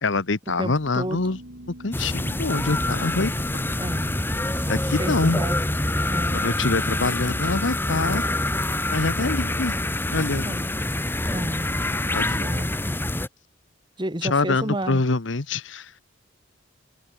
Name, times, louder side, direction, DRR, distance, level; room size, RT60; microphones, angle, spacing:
voice 1, 0.0-1.4 1.8-3.3 4.7-5.4 6.3-8.3 8.9-9.7 10.1-10.5 12.1-12.6 14.2-15.9, left 3 dB, 75° left, 1.1 m, -25 dB
voice 2, 0.6-1.2 3.8-4.2 4.5-4.7 5.0-5.6 6.1-6.5 10.4-10.8 11.3-11.7 12.3-12.7 14.0-15.0, right 1 dB, 25° right, 2.6 m, -31 dB
sound 1, 0.6-7.2, right 1 dB, 75° right, 3.9 m, -45 dB
sound 2, 1.9-13.3, left 1 dB, 10° left, 1.2 m, -26 dB
head